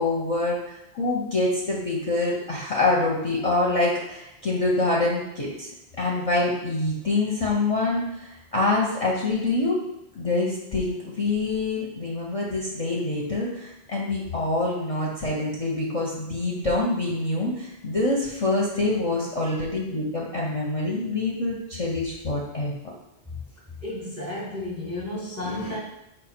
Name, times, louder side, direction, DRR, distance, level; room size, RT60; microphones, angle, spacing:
voice 1, 0.0-5.7 6.0-9.8 10.1-22.7, left 2 dB, 40° left, -4 dB, 0.6 m, -25 dB
voice 2, 23.8-25.8, left 1 dB, 15° right, -3 dB, 0.7 m, -32 dB
5.0 x 2.2 x 4.2 m, 0.87 s
omnidirectional pair, 1.1 m